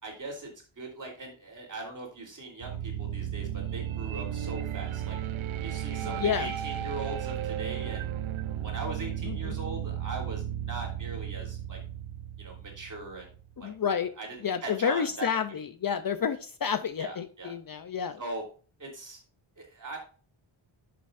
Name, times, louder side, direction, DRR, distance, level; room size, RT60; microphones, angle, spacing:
voice 1, 0.0-5.2 5.6-8.1 8.6-11.8 12.4-13.3 13.6-13.7 14.2-14.3 14.6-15.3 17.0-17.5 18.2-18.4 18.8-19.2 19.6-20.0, right 2 dB, 40° right, 0 dB, 3.6 m, -40 dB
sound 1, 2.6-13.5, right 10 dB, 70° right, 0.6 m, -34 dB
voice 2, 6.0-6.5 9.2-9.6 13.6-14.1 14.4-18.2, left 7 dB, 45° left, 11 dB, 0.6 m, -30 dB
11.0 x 6.9 x 2.6 m, 0.38 s
wide cardioid pair, 160°, 49 cm